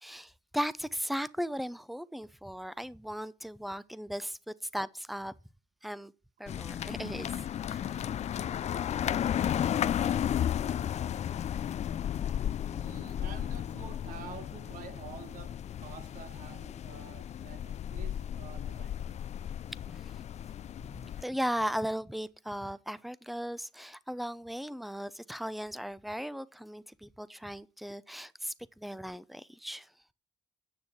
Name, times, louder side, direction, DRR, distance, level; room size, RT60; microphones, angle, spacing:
voice 1, 0.0-5.3 5.8-6.1 6.4-8.0 19.9-20.2 21.2-29.9, equal, ahead, 0.7 m, -37 dB
sound 1, 6.5-21.2, left 10 dB, 50° left, 0.4 m, -34 dB
voice 2, 12.7-19.1 20.5-20.6, right 7 dB, 70° right, 1.4 m, -49 dB
9.5 x 6.3 x 5.5 m
supercardioid pair, 70°, 15 cm